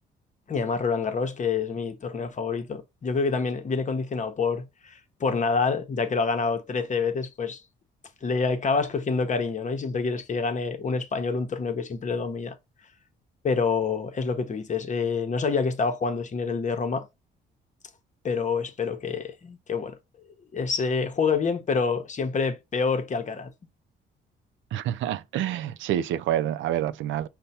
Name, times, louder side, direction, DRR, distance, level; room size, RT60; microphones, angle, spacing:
voice 1, 0.5-7.6 8.2-12.6 13.4-17.1 18.2-20.0 20.5-23.5, left 4 dB, 40° left, 0.8 m, -27 dB
voice 2, 24.7-27.3, right 11 dB, 75° right, 0.4 m, -27 dB
5.4 x 2.2 x 4.1 m
cardioid pair, 90°, 20 cm